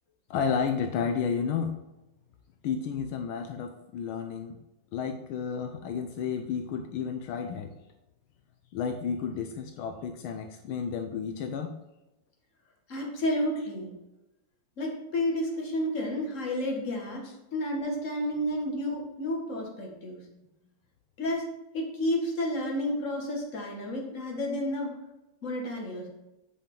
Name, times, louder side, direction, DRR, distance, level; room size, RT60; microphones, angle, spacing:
voice 1, 0.3-1.8 2.6-4.6 4.9-7.7 8.7-11.7, left 6 dB, 80° left, 5 dB, 1.5 m, -31 dB
voice 2, 12.9-13.9 14.8-20.2 21.2-21.4 21.7-24.9 25.4-26.1, left 1 dB, 40° left, -1 dB, 1.9 m, -31 dB
8.4 x 5.7 x 3.8 m, 0.95 s
omnidirectional pair, 2.3 m